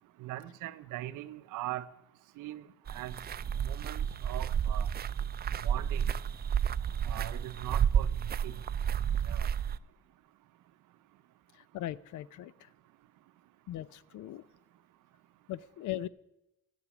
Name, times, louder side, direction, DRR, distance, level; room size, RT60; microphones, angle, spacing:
voice 1, 0.2-1.9 2.4-3.1 3.5-4.9 5.6-6.1 7.0-8.5 9.3-9.5, right 15 dB, 90° right, 0.7 m, -41 dB
sound 1, 2.9-9.8, right 8 dB, 35° right, 0.4 m, -31 dB
voice 2, 11.5-12.7 13.7-14.4 15.5-16.1, left 13 dB, 75° left, 0.6 m, -39 dB
15.5 x 8.5 x 6.1 m
cardioid pair, 90°, 30 cm